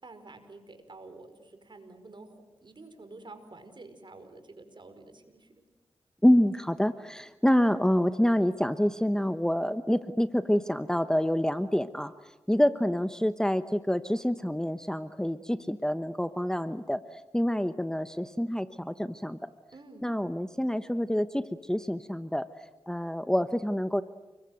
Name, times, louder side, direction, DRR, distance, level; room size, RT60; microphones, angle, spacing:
voice 1, 0.0-5.6 19.7-20.1, right 3 dB, 50° right, 8 dB, 5.1 m, -49 dB
voice 2, 6.2-12.1 12.5-19.5 20.0-22.5 22.9-24.0, equal, 5° left, 12 dB, 1.0 m, -27 dB
30.0 x 22.5 x 7.9 m, 1.1 s
cardioid pair, 50°, 10 cm